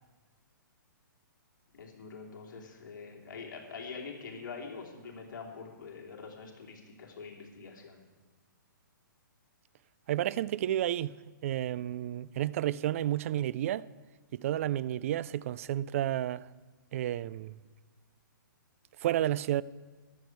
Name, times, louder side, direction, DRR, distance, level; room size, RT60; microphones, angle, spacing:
voice 1, 1.7-8.1, left 5 dB, 65° left, 2.8 m, -45 dB
voice 2, 10.1-11.1 11.4-13.9 14.3-16.5 16.9-17.5 19.0-19.6, right 12 dB, 40° right, 0.3 m, -31 dB
14.0 x 11.0 x 4.6 m
hypercardioid pair, 155°, 11 cm